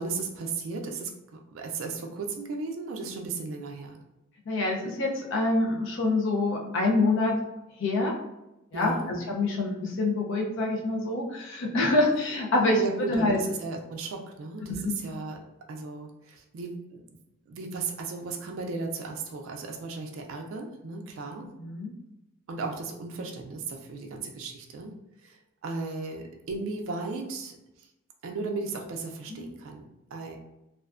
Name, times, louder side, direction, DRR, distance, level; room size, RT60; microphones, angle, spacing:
voice 1, 0.0-4.0 8.7-9.1 12.8-15.4 15.7-17.0 17.5-21.5 22.5-24.9 25.2-27.9 28.2-29.8 30.1-30.4, right 3 dB, 70° right, 2 dB, 0.3 m, -35 dB
voice 2, 4.5-7.4 7.8-8.1 8.7-12.8 13.1-13.4 14.7-15.0 21.6-21.9 29.3-29.4, left 2 dB, 65° left, 0 dB, 0.5 m, -26 dB
2.4 x 2.1 x 2.4 m, 0.90 s
head